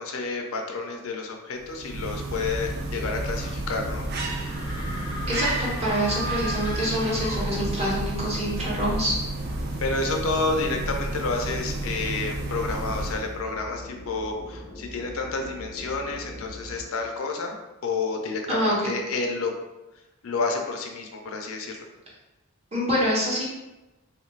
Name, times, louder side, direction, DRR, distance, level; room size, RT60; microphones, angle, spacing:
voice 1, 0.0-4.1 9.8-19.5 20.2-21.9, left 3 dB, 70° left, 3 dB, 0.5 m, -30 dB
sound 1, 1.6-13.4, right 2 dB, 50° right, 0.5 m, -31 dB
sound 2, 3.7-16.8, equal, 85° right, 1.3 m, -41 dB
sound 3, 4.4-8.1, right 1 dB, 20° left, 0.6 m, -37 dB
voice 2, 5.3-9.2 18.5-18.7 22.7-23.5, equal, 30° right, -6 dB, 1.0 m, -26 dB
3.0 x 2.4 x 3.1 m, 1.0 s
head